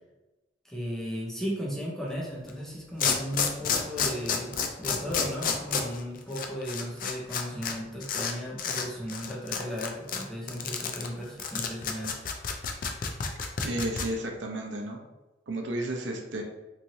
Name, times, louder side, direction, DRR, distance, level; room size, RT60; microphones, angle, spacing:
voice 1, 0.6-12.3, equal, ahead, -5 dB, 0.6 m, -36 dB
sound 1, 2.4-2.5 3.0-7.7 8.0-8.3 8.6-8.8 9.1-14.0, left 6 dB, 50° left, 0.3 m, -30 dB
voice 2, 13.6-15.0 15.5-16.4, right 1 dB, 80° right, 2 dB, 0.5 m, -32 dB
2.9 x 2.6 x 2.7 m, 1.0 s
head